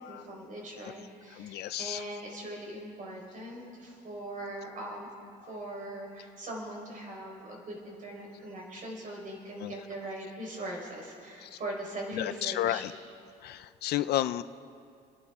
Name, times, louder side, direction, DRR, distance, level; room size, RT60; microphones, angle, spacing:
voice 1, 0.1-5.1 5.5-12.8, right 1 dB, 45° right, -1 dB, 4.3 m, -41 dB
voice 2, 1.4-2.0 9.6-9.7 11.4-11.6 12.1-12.9 13.4-14.4, left 13 dB, 65° left, 13 dB, 0.5 m, -32 dB
28.0 x 11.0 x 3.6 m, 2.4 s
cardioid pair, 135°, 18 cm